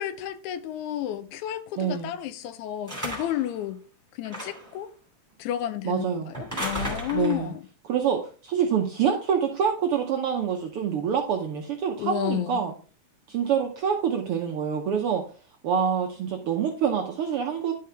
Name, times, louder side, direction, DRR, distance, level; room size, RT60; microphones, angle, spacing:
voice 1, 0.0-3.8 4.2-4.9 5.4-7.6 12.0-12.6, left 12 dB, 80° left, 1.9 m, -31 dB
voice 2, 1.8-2.1 5.8-6.3 7.1-7.5 7.8-12.7 13.3-15.2 15.6-17.7, right 7 dB, 75° right, 1.3 m, -26 dB
sound 1, 2.9-3.5 4.2-4.8 6.3-7.5, equal, 5° right, 2.2 m, -34 dB
10.5 x 5.3 x 3.3 m
omnidirectional pair, 3.5 m